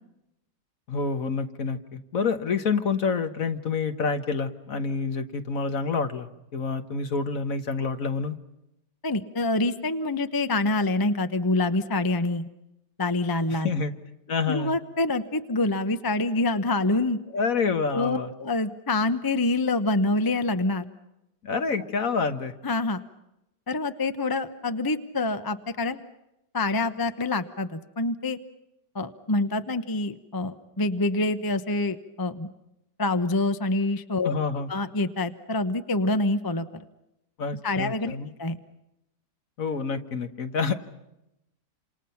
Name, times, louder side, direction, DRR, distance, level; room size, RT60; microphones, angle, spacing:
voice 1, 0.9-8.3 13.5-13.9 14.3-14.8 17.3-18.3 21.4-22.5 34.2-34.7 37.4-38.3 39.6-40.7, left 5 dB, 55° left, 8 dB, 1.7 m, -28 dB
voice 2, 9.0-12.5 13.0-13.7 14.5-17.2 17.9-20.9 22.6-23.0 23.7-26.0 26.5-28.4 28.9-32.5 33.0-34.3 34.7-36.9 37.6-38.6, left 2 dB, 20° left, 10 dB, 0.7 m, -26 dB
28.5 x 27.5 x 5.8 m, 0.87 s
omnidirectional pair, 1.9 m